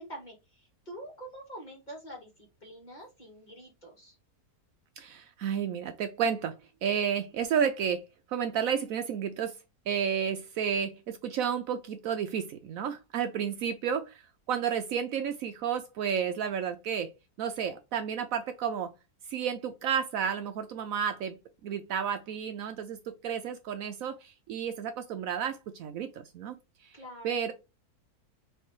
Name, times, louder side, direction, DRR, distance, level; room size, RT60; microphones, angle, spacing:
voice 1, 0.0-4.2 26.9-27.4, right 1 dB, 30° left, 1.5 m, -46 dB
voice 2, 5.0-9.5 9.9-17.1 17.4-18.9 19.3-26.6 26.8-27.0 27.2-27.5, right 7 dB, 70° right, 0.9 m, -32 dB
3.3 x 3.2 x 4.4 m
omnidirectional pair, 1.6 m